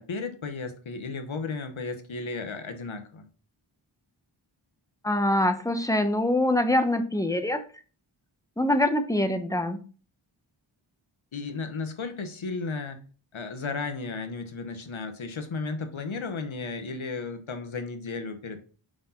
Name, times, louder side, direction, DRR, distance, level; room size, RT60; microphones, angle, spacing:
voice 1, 0.0-3.3 11.3-13.0 13.3-18.7, left 4 dB, 70° left, 7 dB, 1.2 m, -34 dB
voice 2, 5.0-7.6 8.6-9.8, left 1 dB, 5° left, 7 dB, 1.0 m, -24 dB
5.6 x 5.1 x 3.8 m, 0.37 s
cardioid pair, 50°, 49 cm